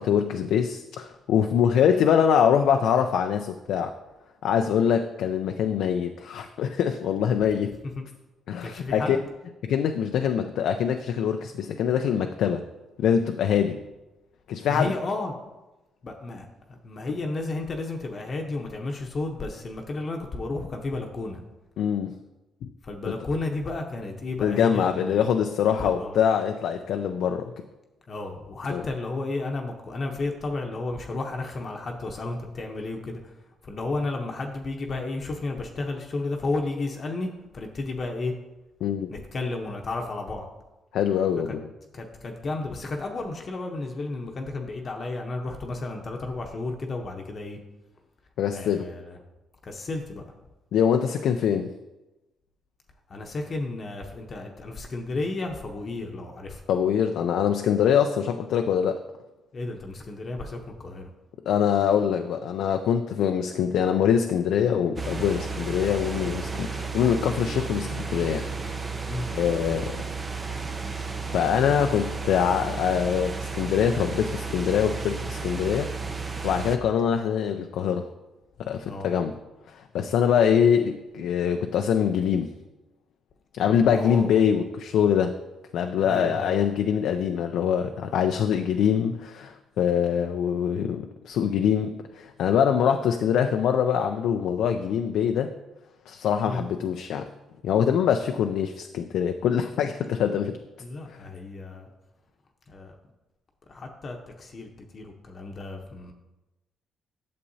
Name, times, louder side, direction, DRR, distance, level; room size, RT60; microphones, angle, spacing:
voice 1, 0.0-3.9 4.4-7.8 8.5-9.2 9.6-12.6 13.0-13.8 14.5-14.9 21.8-22.1 24.4-27.5 28.7-28.8 38.8-39.1 40.9-41.7 48.4-48.9 50.7-51.7 56.7-59.0 61.5-68.8 69.3-70.0 71.3-75.9 76.4-78.1 78.6-79.3 79.7-82.5 83.6-85.4 85.7-95.5 96.1-97.3 97.6-100.6 101.1-101.2, left 8 dB, 80° left, 6 dB, 0.4 m, -24 dB
voice 2, 8.6-9.2 14.7-15.4 16.0-16.5 16.8-21.4 22.8-25.3 25.8-26.2 28.1-33.3 33.6-38.3 39.1-40.5 41.9-47.6 48.5-49.2 49.7-50.2 53.1-56.6 59.5-61.1 69.1-69.3 78.8-79.1 83.9-84.3 86.0-86.6 96.5-96.7 100.8-101.9 102.7-103.0 103.7-106.1, left 2 dB, 45° left, 2 dB, 0.8 m, -32 dB
sound 1, 65.0-76.8, right 4 dB, 30° right, 0.7 m, -33 dB
8.5 x 6.8 x 2.7 m, 1.0 s
cardioid pair, 90°, 0 cm